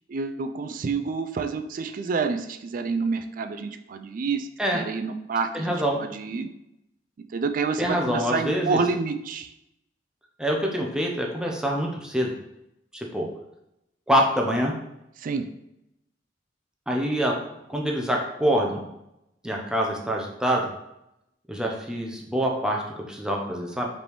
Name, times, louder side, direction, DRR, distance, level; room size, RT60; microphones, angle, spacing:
voice 1, 0.1-6.5 7.3-9.5 15.2-15.5, right 4 dB, 45° right, 8 dB, 0.3 m, -28 dB
voice 2, 5.5-6.0 7.8-8.8 10.4-12.3 12.9-13.3 14.1-14.7 16.9-17.4 17.7-18.9 19.4-20.7 21.5-23.9, equal, 5° right, -1 dB, 0.6 m, -25 dB
5.0 x 3.4 x 3.0 m, 0.85 s
head